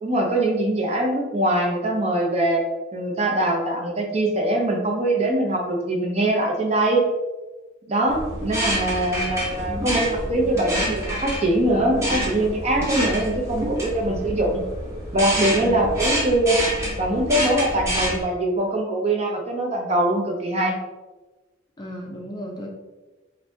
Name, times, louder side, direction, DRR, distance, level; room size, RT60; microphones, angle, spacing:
voice 1, 0.0-2.6 2.9-7.0 7.9-14.6 15.1-16.6 17.0-20.8, right 1 dB, 35° right, 0 dB, 0.7 m, -22 dB
sound 1, 8.1-18.2, equal, 15° right, 1.0 m, -27 dB
voice 2, 10.2-10.9 15.4-15.8 21.8-22.7, equal, 20° left, 0 dB, 0.5 m, -35 dB
4.2 x 2.6 x 3.3 m, 1.2 s
head